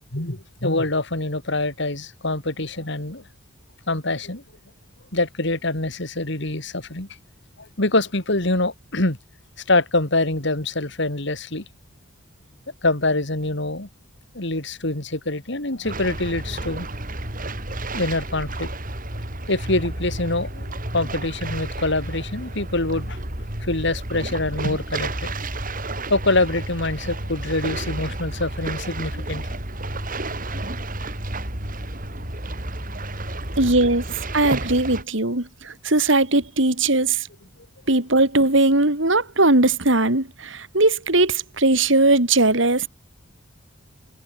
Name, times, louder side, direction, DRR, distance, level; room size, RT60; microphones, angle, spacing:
voice 1, 0.1-3.3 3.9-4.4 5.1-7.1 7.6-9.2 9.7-11.7 12.8-13.9 14.3-16.9 17.9-18.7 19.5-23.2 23.6-25.3 26.1-29.5, left 2 dB, 60° left, 3.7 m, -25 dB
sound 1, 15.8-35.0, right 1 dB, 45° right, 6.4 m, -31 dB
voice 2, 33.6-37.3 37.9-42.9, right 2 dB, 65° right, 3.4 m, -19 dB
head